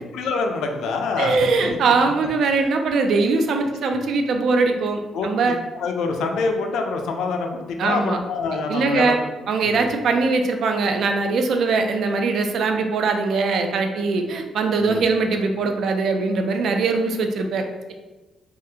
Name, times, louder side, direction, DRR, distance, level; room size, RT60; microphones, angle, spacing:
voice 1, 0.0-2.0 2.2-2.3 5.1-5.5 5.8-9.2 9.6-9.9 14.8-15.0, left 4 dB, 85° left, 4 dB, 0.4 m, -26 dB
voice 2, 1.2-5.6 7.8-8.2 8.7-9.2 9.5-17.9, right 4 dB, 60° right, 5 dB, 0.3 m, -21 dB
3.6 x 2.1 x 2.7 m, 1.2 s
cardioid pair, 145°, 0 cm